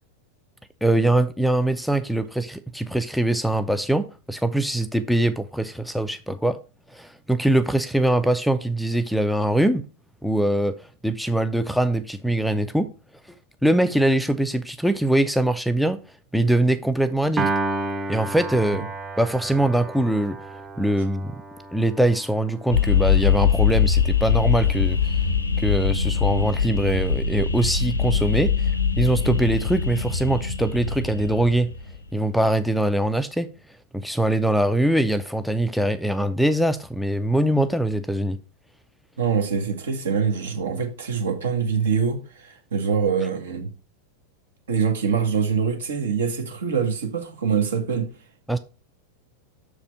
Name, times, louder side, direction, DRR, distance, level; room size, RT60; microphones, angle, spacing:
voice 1, 0.8-6.6 6.9-9.8 10.2-10.7 11.0-12.9 13.6-16.0 16.3-17.5 18.1-18.8 19.2-20.4 20.8-21.4 21.7-25.2 25.6-28.7 29.0-31.7 32.1-33.5 33.9-38.4 48.5-48.6, right 1 dB, ahead, 0.4 m, -22 dB
Piano, 17.4-23.8, right 3 dB, 15° right, 0.8 m, -32 dB
sound 1, 22.7-32.0, left 6 dB, 80° left, 0.8 m, -22 dB
voice 2, 39.2-43.7 44.7-48.1, right 6 dB, 65° right, 1.5 m, -24 dB
6.6 x 4.8 x 4.6 m
figure-of-eight pair, 90°, 0 cm